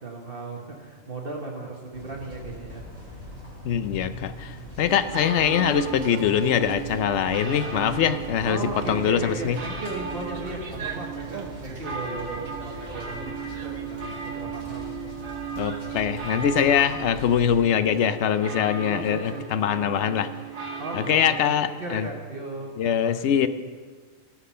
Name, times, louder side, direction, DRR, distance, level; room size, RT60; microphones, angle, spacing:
voice 1, 0.0-3.3 8.4-13.4 13.9-14.9 18.9-19.8 20.8-21.4 21.6-23.4, right 3 dB, 45° right, -1 dB, 1.4 m, -36 dB
sound 1, 1.9-17.6, equal, 25° right, 4.7 m, -42 dB
voice 2, 3.6-8.6 8.9-9.6 15.5-20.3 20.9-22.1 22.8-23.5, left 8 dB, 65° left, 12 dB, 0.8 m, -23 dB
sound 2, 4.8-21.4, right 5 dB, 90° right, 1.5 m, -36 dB
17.5 x 6.1 x 5.6 m, 1.5 s
omnidirectional pair, 1.4 m